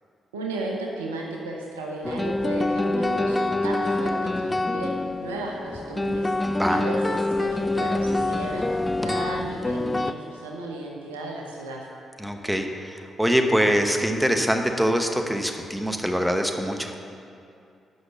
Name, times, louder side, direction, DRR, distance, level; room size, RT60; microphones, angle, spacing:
voice 1, 0.3-11.9, right 2 dB, 90° right, -1 dB, 0.8 m, -34 dB
sound 1, 2.0-10.1, left 2 dB, 20° left, 0.4 m, -26 dB
voice 2, 6.5-6.8 12.2-16.9, equal, 5° right, 5 dB, 1.0 m, -24 dB
8.1 x 5.8 x 6.8 m, 2.5 s
hypercardioid pair, 40°, 0 cm